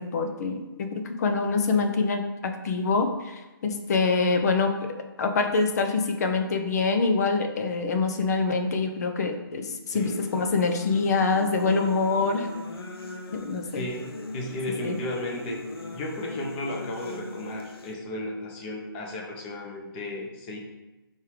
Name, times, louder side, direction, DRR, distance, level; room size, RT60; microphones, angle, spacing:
voice 1, 0.0-4.9 5.2-12.5 13.3-13.9 14.8-15.0, left 4 dB, 45° left, 5 dB, 0.8 m, -25 dB
sound 1, 9.9-17.9, left 2 dB, 80° left, 0.9 m, -40 dB
voice 2, 14.3-20.6, left 1 dB, 25° left, -1 dB, 1.2 m, -34 dB
5.4 x 3.7 x 4.8 m, 1.1 s
hypercardioid pair, 150°, 12 cm